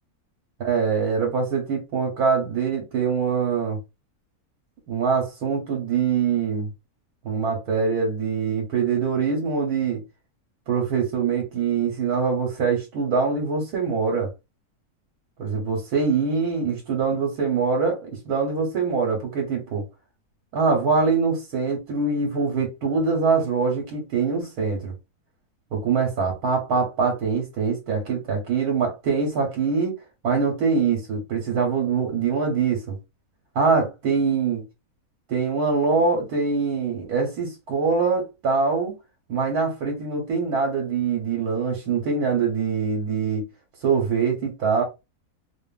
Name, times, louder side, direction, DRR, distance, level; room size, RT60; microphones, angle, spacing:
voice 1, 0.6-3.8 4.9-6.7 7.2-10.0 10.7-14.3 15.4-19.8 20.5-24.9 25.7-30.0 30.2-33.0 33.5-34.6 35.3-39.0 39.3-43.4 43.8-44.8, right 5 dB, 85° right, 1.3 m, -23 dB
2.8 x 2.4 x 2.3 m
omnidirectional pair, 1.6 m